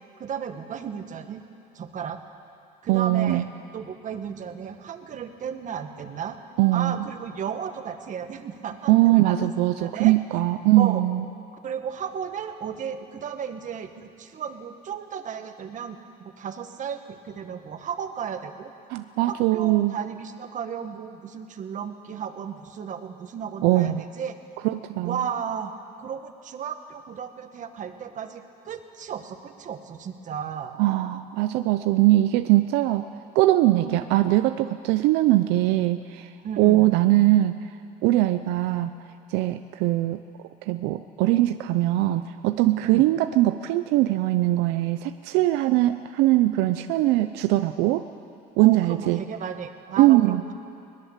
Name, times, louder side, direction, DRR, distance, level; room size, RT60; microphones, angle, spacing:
voice 1, 0.2-1.4 1.7-2.2 2.8-6.4 6.7-9.5 9.8-10.1 10.7-11.0 11.6-18.7 19.3-24.3 25.0-25.7 26.0-30.7 33.7-34.0 36.4-36.9 42.8-43.0 48.6-50.5, right 7 dB, 50° right, 7 dB, 1.7 m, -34 dB
voice 2, 2.9-3.4 6.6-7.0 8.9-11.2 18.9-19.9 23.6-24.0 24.6-25.2 30.8-33.1 33.3-36.3 36.6-37.5 38.0-38.9 39.3-40.2 40.7-48.1 48.6-49.2 50.0-50.4, right 16 dB, 90° right, 9 dB, 0.6 m, -21 dB
21.5 x 20.0 x 7.4 m, 2.5 s
cardioid pair, 110°, 17 cm